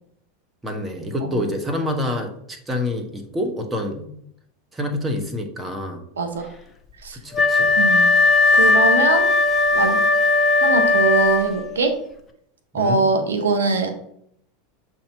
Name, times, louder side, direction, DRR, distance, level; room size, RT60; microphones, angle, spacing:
voice 1, 0.6-4.1 4.7-6.0 7.1-7.7 8.4-8.7 12.7-13.0, left 1 dB, 15° right, 3 dB, 1.3 m, -27 dB
voice 2, 6.2-6.5 7.0-7.2 7.8-8.1 8.5-9.3 9.7-10.0 10.6-11.9 12.7-13.9, right 3 dB, 80° right, 6 dB, 0.7 m, -22 dB
Wind instrument woodwind instrument, 7.3-11.8, left 3 dB, 15° left, 1.0 m, -17 dB
7.1 x 3.0 x 4.5 m, 0.71 s
hypercardioid pair, 90°, 0 cm